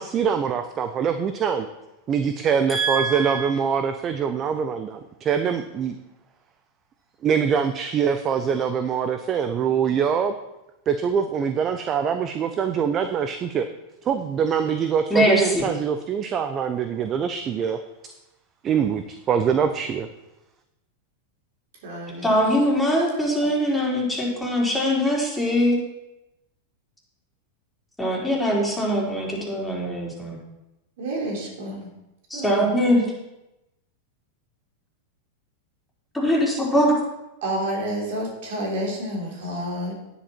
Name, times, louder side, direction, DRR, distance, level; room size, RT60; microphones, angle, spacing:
voice 1, 0.0-1.7 2.1-6.0 7.2-10.3 10.9-13.7 14.0-17.8 18.6-20.1, right 7 dB, 35° right, 8 dB, 0.7 m, -24 dB
voice 2, 2.7-3.5 15.1-15.7 22.2-25.8 28.0-30.4 32.3-33.0 36.1-36.9, equal, 5° left, -4 dB, 4.2 m, -22 dB
voice 3, 21.8-22.3 31.0-31.9 32.3-32.7 37.4-40.0, right 1 dB, 65° right, -1 dB, 3.5 m, -29 dB
10.0 x 10.0 x 4.4 m, 0.94 s
hypercardioid pair, 100°, 0 cm